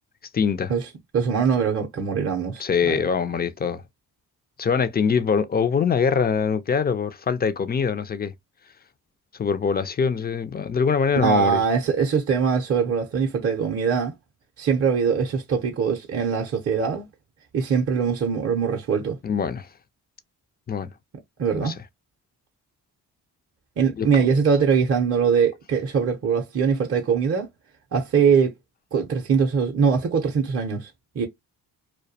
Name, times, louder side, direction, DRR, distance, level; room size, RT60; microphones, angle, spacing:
voice 1, 0.3-0.7 2.6-3.8 4.6-8.3 9.4-11.6 19.2-19.7 20.7-20.9 21.6-21.7 24.0-24.1, left 6 dB, 25° left, 0.3 m, -23 dB
voice 2, 1.1-3.0 11.2-14.1 14.6-17.1 17.5-19.2 21.4-21.7 23.8-27.5 27.9-28.5 28.9-30.9 31.2-31.3, right 6 dB, 35° right, 0.6 m, -22 dB
2.2 x 2.1 x 2.6 m
supercardioid pair, 50°, 41 cm